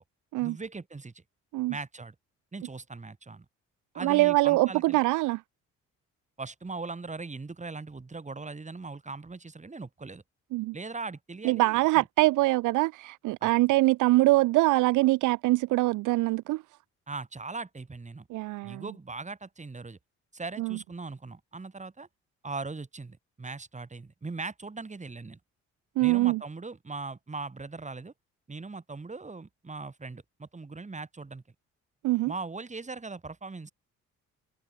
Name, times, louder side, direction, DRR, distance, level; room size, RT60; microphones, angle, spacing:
voice 1, 0.4-1.2 1.7-2.2 2.5-3.5 3.9-5.0 6.4-10.2 10.7-12.0 13.4-13.5 17.1-18.3 18.6-20.0 20.3-22.1 22.4-25.4 26.0-28.1 28.5-31.4 32.3-33.7, right 3 dB, 25° right, 5.1 m, -40 dB
voice 2, 4.0-5.4 10.5-10.7 11.4-16.6 18.3-18.8 20.6-20.8 26.0-26.4 32.0-32.3, right 20 dB, 80° right, 0.5 m, -24 dB
open air
cardioid pair, 90°, 30 cm